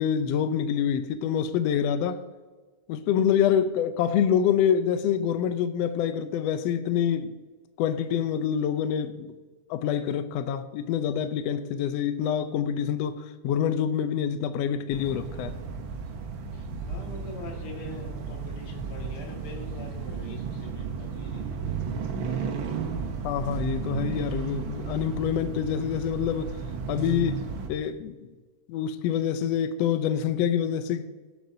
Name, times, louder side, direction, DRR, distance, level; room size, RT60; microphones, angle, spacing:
voice 1, 0.0-2.2 2.9-7.4 7.8-9.3 9.7-15.6 23.2-26.5 26.9-28.3 28.7-31.1, left 8 dB, 75° left, 1.5 m, -26 dB
sound 1, 14.9-27.7, right 5 dB, 70° right, 1.1 m, -34 dB
voice 2, 16.5-21.8, left 2 dB, 45° left, 2.7 m, -43 dB
20.0 x 7.7 x 2.7 m
omnidirectional pair, 3.6 m